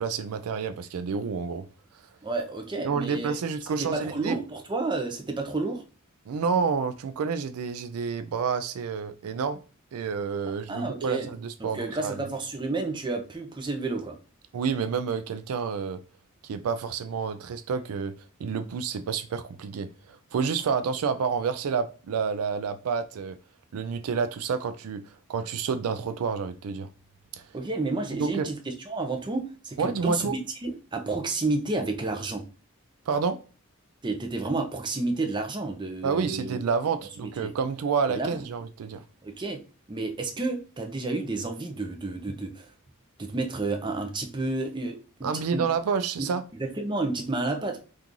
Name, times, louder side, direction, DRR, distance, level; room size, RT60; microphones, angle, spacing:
voice 1, 0.0-1.6 2.8-4.4 6.3-9.6 9.9-12.2 14.5-16.0 16.4-18.1 18.4-23.4 23.7-25.0 25.3-26.9 28.2-28.5 29.8-30.3 33.1-33.4 36.0-39.0 45.2-46.4, right 5 dB, 85° right, 0.4 m, -29 dB
voice 2, 2.2-3.3 3.8-5.8 10.7-11.3 11.7-14.2 27.5-32.4 34.0-36.6 37.2-37.5 38.1-38.5 39.2-39.6 39.9-42.7 43.2-45.6 46.2-47.8, right 3 dB, 20° right, 0.6 m, -31 dB
2.9 x 2.5 x 3.7 m
head